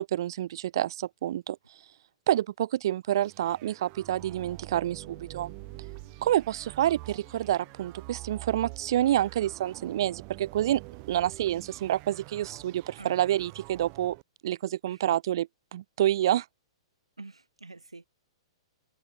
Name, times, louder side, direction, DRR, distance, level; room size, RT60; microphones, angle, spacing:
voice 1, 0.0-1.6 2.3-5.5 6.2-10.8 11.1-14.2 14.4-16.5, right 12 dB, 55° right, 0.5 m, -28 dB
sound 1, 3.2-14.2, right 35 dB, 35° right, 1.4 m, -46 dB
sound 2, 4.0-10.6, left 11 dB, 55° left, 7.1 m, -62 dB
voice 2, 14.9-15.2 17.2-18.1, right 3 dB, 85° right, 1.7 m, -46 dB
figure-of-eight pair, 110°, 3 cm